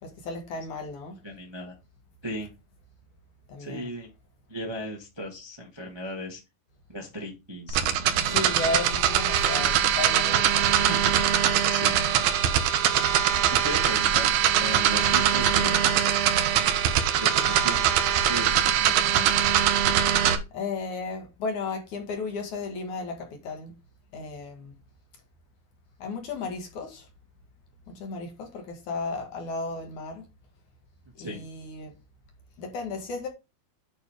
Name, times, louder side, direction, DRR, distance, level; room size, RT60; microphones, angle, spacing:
voice 1, 0.0-1.2 3.5-3.9 8.2-10.9 20.5-23.7 24.1-24.7 26.0-27.1 27.9-30.2 31.2-31.9 32.6-33.3, left 3 dB, 60° left, 2.8 m, -34 dB
voice 2, 1.2-1.7 2.2-2.5 3.6-4.1 4.5-6.4 6.9-8.4 9.4-9.7 10.8-11.2 11.7-12.0 13.6-16.0 17.2-17.9 18.3-19.3 31.2-31.4, equal, 15° right, 0.9 m, -37 dB
sound 1, 7.7-20.4, right 10 dB, 75° right, 2.6 m, -22 dB
8.8 x 3.6 x 4.9 m
omnidirectional pair, 4.3 m